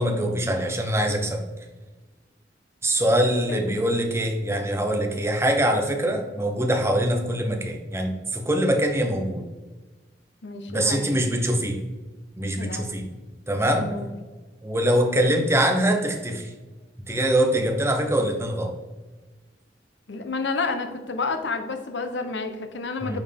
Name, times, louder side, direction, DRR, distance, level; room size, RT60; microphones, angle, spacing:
voice 1, 0.0-1.4 2.8-9.4 10.7-11.8 12.4-13.0 13.5-13.8 14.6-16.5 17.1-18.7 23.0-23.2, right 1 dB, 15° right, 2 dB, 0.9 m, -23 dB
voice 2, 10.4-11.1 12.6-12.9 13.8-14.1 20.1-23.2, left 3 dB, 80° left, 7 dB, 0.9 m, -30 dB
9.0 x 4.5 x 3.5 m, 1.2 s
head